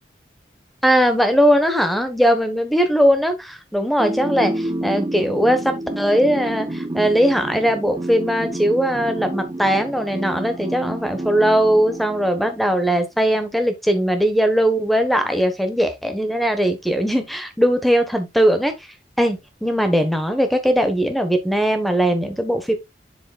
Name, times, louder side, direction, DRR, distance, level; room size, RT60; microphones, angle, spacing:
voice 1, 0.8-18.7 19.2-22.7, equal, ahead, 1.1 m, -19 dB
sound 1, 4.0-12.8, right 1 dB, 25° right, 0.6 m, -29 dB
7.8 x 6.7 x 2.3 m
head